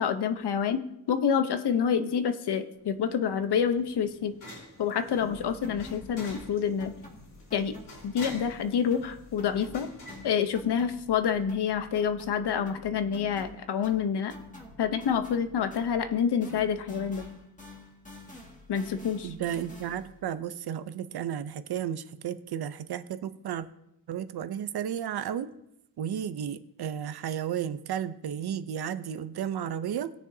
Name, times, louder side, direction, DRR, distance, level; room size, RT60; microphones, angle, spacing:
voice 1, 0.0-4.3 4.8-6.9 7.5-7.7 8.0-9.9 10.2-14.3 14.8-17.3 18.7-19.3, left 7 dB, 75° left, 9 dB, 0.9 m, -27 dB
sound 1, 2.8-11.2, left 1 dB, 50° left, 4.1 m, -48 dB
sound 2, 5.2-8.6 8.9-16.2 16.4-20.2, left 2 dB, 20° left, 1.9 m, -48 dB
voice 2, 19.2-23.7 24.1-25.5 26.0-30.1, right 9 dB, 70° right, 12 dB, 0.7 m, -33 dB
19.0 x 6.8 x 2.8 m, 0.80 s
wide cardioid pair, 120°, 40 cm